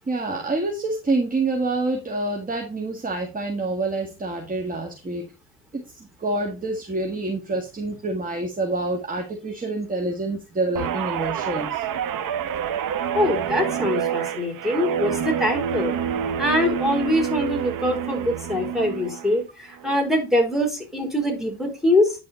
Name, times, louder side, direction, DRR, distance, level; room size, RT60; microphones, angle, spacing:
voice 1, 0.1-5.3 5.7-11.8, right 2 dB, 20° right, 2 dB, 1.8 m, -27 dB
Guitar, 10.8-19.3 19.7-20.1, right 9 dB, 50° right, 1.4 m, -27 dB
voice 2, 13.1-15.9 16.4-22.1, left 1 dB, ahead, 0 dB, 4.1 m, -23 dB
10.5 x 4.2 x 4.2 m, 0.28 s
supercardioid pair, 85°, 43 cm